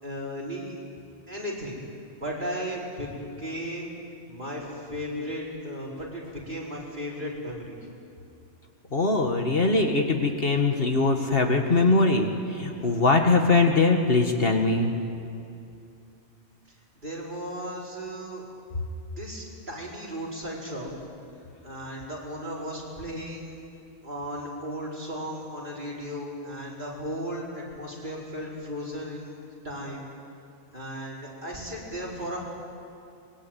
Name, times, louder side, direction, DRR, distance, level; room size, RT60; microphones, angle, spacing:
voice 1, 0.0-0.8 1.3-1.8 2.2-3.1 3.4-3.9 4.3-7.8 12.7-12.9 17.0-18.4 19.2-20.9 21.6-23.5 24.0-29.4 29.6-30.0 30.7-32.4, equal, 40° right, -4 dB, 5.2 m, -35 dB
voice 2, 8.9-14.9, left 3 dB, 50° left, 4 dB, 1.9 m, -22 dB
25.0 x 21.5 x 9.3 m, 2.5 s
omnidirectional pair, 1.2 m